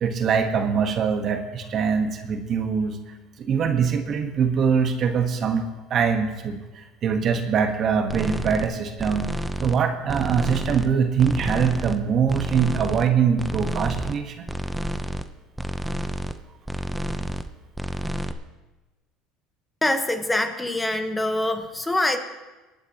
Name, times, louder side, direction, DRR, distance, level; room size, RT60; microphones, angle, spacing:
voice 1, 0.0-3.0 3.4-5.6 5.9-9.3 9.6-14.5, right 6 dB, 45° right, 6 dB, 1.3 m, -23 dB
sound 1, 8.1-8.7 9.0-9.8 10.1-10.9 11.2-12.0 12.3-13.1 13.4-14.2 14.5-15.2 15.6-16.4 16.6-17.5 17.7-18.3, right 1 dB, 5° right, 0.8 m, -30 dB
voice 2, 19.8-22.2, left 1 dB, 10° left, 6 dB, 1.2 m, -24 dB
26.5 x 9.5 x 3.0 m, 1.1 s
supercardioid pair, 95°, 0 cm